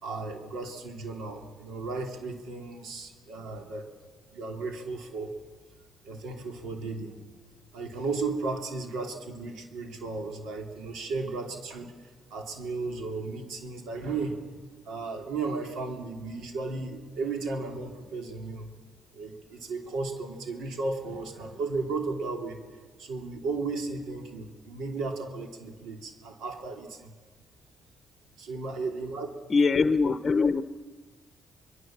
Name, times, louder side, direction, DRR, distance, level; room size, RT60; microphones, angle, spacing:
voice 1, 0.0-3.9 4.3-5.4 6.0-7.2 7.7-11.9 12.3-14.4 14.8-18.7 19.1-22.6 23.0-27.1 28.4-29.3, right 3 dB, 85° right, 3 dB, 3.1 m, -34 dB
voice 2, 29.5-30.6, left 4 dB, 35° left, 11 dB, 0.8 m, -22 dB
25.0 x 21.5 x 7.4 m, 1.5 s
cardioid pair, 90°, 0 cm